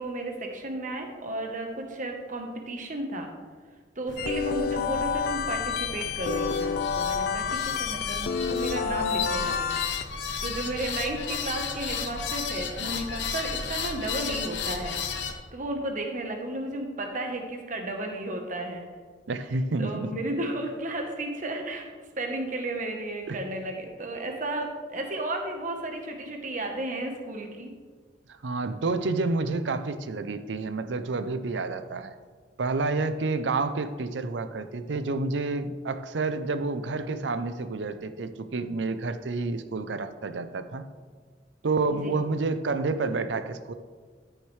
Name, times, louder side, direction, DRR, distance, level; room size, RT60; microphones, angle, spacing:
voice 1, 0.0-3.3 4.0-9.7 10.4-15.0 15.5-18.9 19.8-21.8 22.2-27.7 42.0-42.2, right 1 dB, 45° right, 3 dB, 1.1 m, -33 dB
sound 1, 4.1-15.3, left 5 dB, 85° left, 1.0 m, -34 dB
sound 2, 4.2-10.0, left 6 dB, 55° left, 0.3 m, -29 dB
voice 2, 19.3-20.2 23.3-23.4 28.3-32.1 32.6-40.8 41.6-43.7, right 3 dB, 85° right, 10 dB, 0.6 m, -29 dB
13.0 x 6.5 x 3.3 m, 1.5 s
head